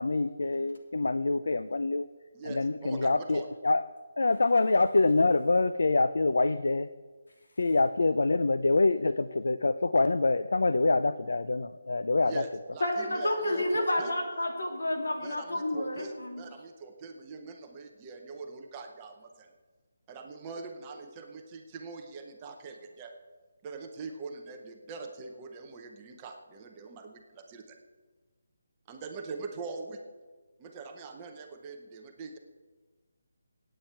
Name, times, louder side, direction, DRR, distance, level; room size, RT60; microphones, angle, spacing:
voice 1, 0.0-2.1 2.4-3.8 4.2-6.9 7.6-12.4, left 3 dB, 70° left, 13 dB, 0.5 m, -25 dB
voice 2, 2.3-3.5 12.2-14.1 15.2-19.5 20.1-23.1 23.6-27.8 28.9-30.0 30.6-32.4, right 4 dB, 10° right, 3 dB, 0.7 m, -43 dB
voice 3, 12.8-16.4, left 1 dB, 90° left, 1 dB, 3.1 m, -30 dB
15.5 x 8.8 x 4.5 m, 1.4 s
hypercardioid pair, 180°, 0 cm